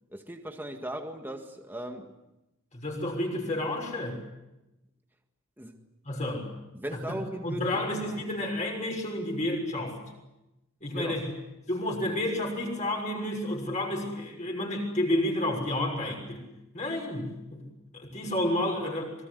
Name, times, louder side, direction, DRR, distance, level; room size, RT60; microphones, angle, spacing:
voice 1, 0.1-2.1 5.6-5.8 6.7-7.8 8.1-8.2 10.9-11.2, right 1 dB, 10° right, 4 dB, 1.9 m, -38 dB
voice 2, 2.7-4.2 6.0-6.5 6.9-10.0 10.8-11.3 11.7-16.4 16.7-17.6 17.9-19.1, left 1 dB, 35° left, 0 dB, 6.4 m, -30 dB
26.5 x 23.0 x 8.1 m, 0.94 s
head